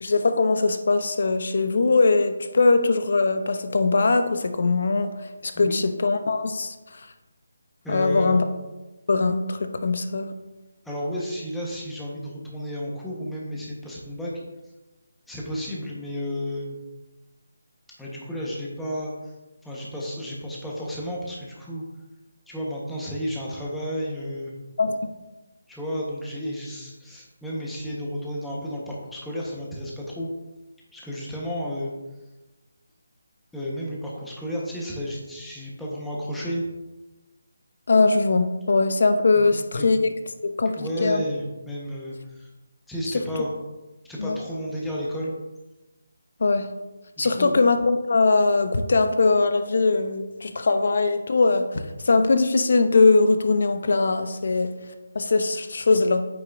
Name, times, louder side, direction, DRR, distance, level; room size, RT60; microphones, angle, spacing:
voice 1, 0.0-6.7 7.9-8.4 9.1-10.3 24.8-25.1 37.9-40.1 40.4-41.2 44.2-44.4 46.4-46.7 47.2-54.7 55.1-56.3, left 3 dB, 60° left, 9 dB, 0.8 m, -21 dB
voice 2, 7.8-8.4 10.8-14.4 15.3-16.8 18.0-19.3 19.6-21.9 22.5-24.5 25.7-30.3 30.9-31.9 33.5-36.6 39.3-39.9 40.8-42.5 42.9-43.5 44.0-45.3 47.2-47.6, equal, 5° left, -6 dB, 1.3 m, -32 dB
8.8 x 6.6 x 2.7 m, 1.1 s
figure-of-eight pair, 165°, 0 cm